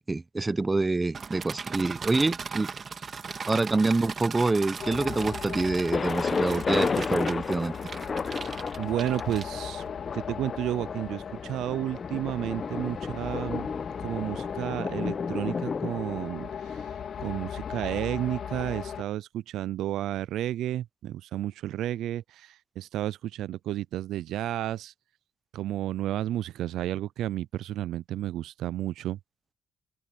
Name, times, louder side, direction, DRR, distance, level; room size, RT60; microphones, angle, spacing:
voice 1, 0.1-2.7 3.5-7.7, right 3 dB, 20° right, 0.8 m, -26 dB
sound 1, 1.1-9.9, right 5 dB, 40° right, 2.2 m, -38 dB
sound 2, 4.8-19.0, left 8 dB, 60° left, 2.0 m, -38 dB
Thunder, 5.9-17.7, left 5 dB, 35° left, 0.9 m, -33 dB
voice 2, 8.8-9.8 10.1-13.7 14.0-16.9 17.2-24.9 25.5-29.2, right 12 dB, 80° right, 0.3 m, -32 dB
open air
cardioid pair, 90°, 0 cm